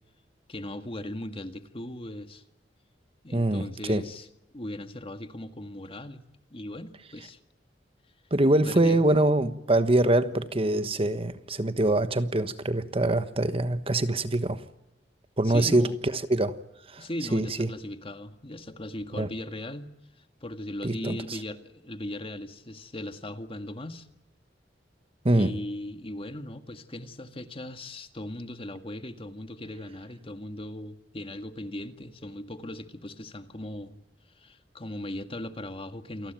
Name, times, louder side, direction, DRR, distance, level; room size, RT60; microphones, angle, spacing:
voice 1, 0.5-2.4 3.2-4.3 4.5-6.2 6.5-7.4 8.6-9.0 15.4-16.0 17.0-24.1 25.3-34.0 34.4-36.3, left 1 dB, 30° left, 1.9 m, -38 dB
voice 2, 3.3-4.0 8.3-14.6 15.4-16.6 16.9-17.0 17.3-17.7 19.1-19.3 20.8-21.4 25.2-25.6, right 1 dB, 35° right, 1.3 m, -24 dB
28.5 x 19.5 x 9.1 m
head